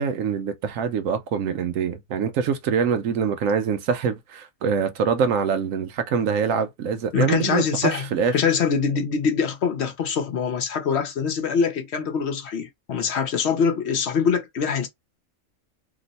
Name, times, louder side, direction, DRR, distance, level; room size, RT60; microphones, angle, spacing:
voice 1, 0.0-8.3, right 6 dB, 80° right, 1.0 m, -24 dB
voice 2, 7.1-8.1 8.3-14.9, left 6 dB, 60° left, 0.8 m, -24 dB
3.0 x 2.1 x 4.0 m
omnidirectional pair, 1.4 m